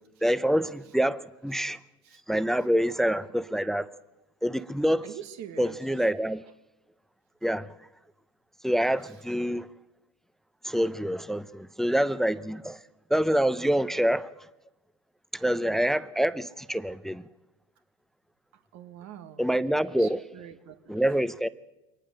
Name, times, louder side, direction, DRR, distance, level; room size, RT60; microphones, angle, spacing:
voice 1, 0.2-1.8 2.3-3.9 4.4-5.1 5.6-6.4 7.4-7.7 8.6-9.7 10.6-12.8 13.1-14.3 15.3-17.2 19.4-20.2 20.9-21.5, equal, ahead, 0.8 m, -26 dB
voice 2, 5.0-5.8 18.7-19.4 20.0-21.0, right 9 dB, 60° right, 1.7 m, -44 dB
23.0 x 19.0 x 6.5 m
supercardioid pair, 85°, 31 cm